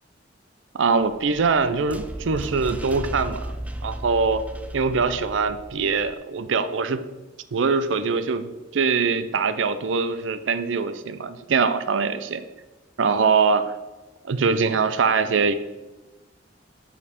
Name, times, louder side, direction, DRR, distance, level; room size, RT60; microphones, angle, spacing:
voice 1, 0.7-3.6 3.8-4.4 4.7-7.0 7.5-12.4 13.0-13.8 14.2-15.5, right 5 dB, 80° right, 12 dB, 0.5 m, -23 dB
sound 1, 1.0-6.1, right 1 dB, 10° right, 0.4 m, -35 dB
6.8 x 5.3 x 5.1 m, 1.1 s
head